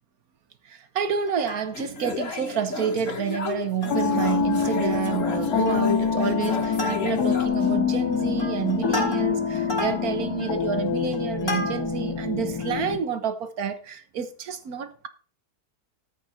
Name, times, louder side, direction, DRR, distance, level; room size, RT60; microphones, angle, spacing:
voice 1, 0.9-15.1, right 7 dB, 65° right, 1.5 m, -29 dB
Plucked string instrument, 1.3-2.1 2.5-2.6 2.8-3.1 3.5-4.2 4.5-4.6 4.9-5.3 5.7-6.0 6.4-7.5 8.0-12.1 12.6-12.7, left 1 dB, 40° left, 3.2 m, -33 dB
sound 1, 1.7-7.5, left 5 dB, 55° left, 1.8 m, -33 dB
sound 2, 3.9-13.0, left 6 dB, 70° left, 2.5 m, -25 dB
14.0 x 5.5 x 4.4 m
omnidirectional pair, 1.7 m